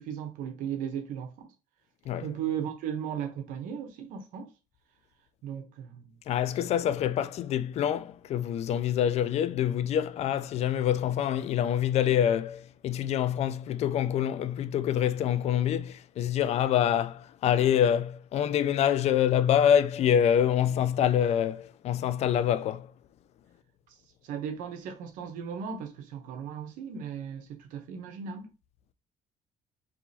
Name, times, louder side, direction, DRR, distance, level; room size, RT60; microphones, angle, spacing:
voice 1, 0.0-1.5 2.2-4.5 5.4-6.2 23.9-24.0 24.2-28.5, right 8 dB, 85° right, 0.9 m, -36 dB
voice 2, 6.3-22.9, left 9 dB, 55° left, 0.4 m, -26 dB
4.8 x 3.0 x 2.7 m
cardioid pair, 120°, 14 cm